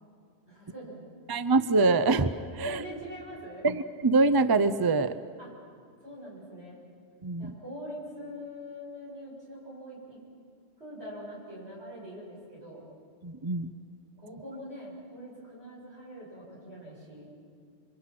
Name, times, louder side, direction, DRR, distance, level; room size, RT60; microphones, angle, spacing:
voice 1, 0.5-1.0 2.6-3.7 5.4-5.5 6.0-6.8 7.4-10.2 10.8-12.8 14.2-17.3, equal, 70° right, -5 dB, 8.0 m, -43 dB
voice 2, 1.3-2.8 3.6-5.2 7.2-7.5 13.2-13.7, right 3 dB, 30° right, 13 dB, 0.5 m, -24 dB
28.0 x 24.5 x 6.0 m, 2.1 s
omnidirectional pair, 1.2 m